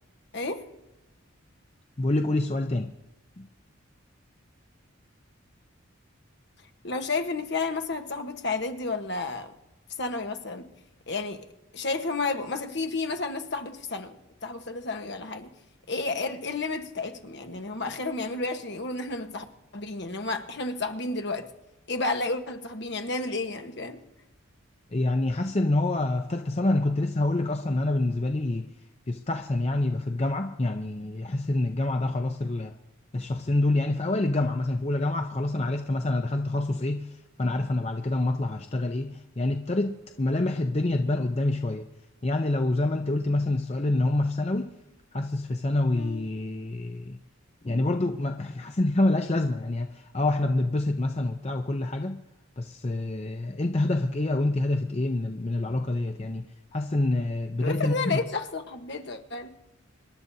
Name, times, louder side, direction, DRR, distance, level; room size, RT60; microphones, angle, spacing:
voice 1, 0.3-0.7 6.8-9.5 10.0-10.7 11.1-11.4 11.7-15.5 15.9-19.4 19.7-21.5 21.9-24.0 45.9-46.3 57.6-59.5, left 3 dB, 55° left, 1.2 m, -31 dB
voice 2, 2.0-2.9 3.4-3.5 24.9-28.7 29.1-32.7 33.1-41.8 42.2-44.7 45.1-47.2 47.6-52.2 52.6-56.4 56.7-58.2, left 2 dB, 30° left, 0.6 m, -27 dB
26.0 x 11.5 x 2.8 m
head